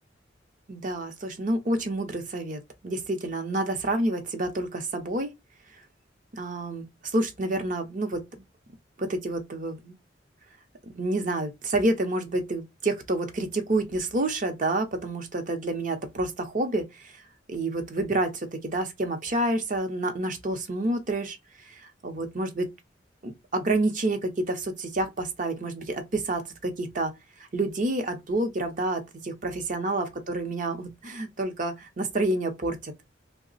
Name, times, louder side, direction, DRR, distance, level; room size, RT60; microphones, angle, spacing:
voice 1, 0.7-5.3 6.3-8.2 9.0-10.0 10.8-17.1 17.5-21.4 22.0-22.7 23.2-27.1 27.5-32.9, right 2 dB, 45° right, 0.7 m, -28 dB
2.8 x 2.1 x 3.9 m
head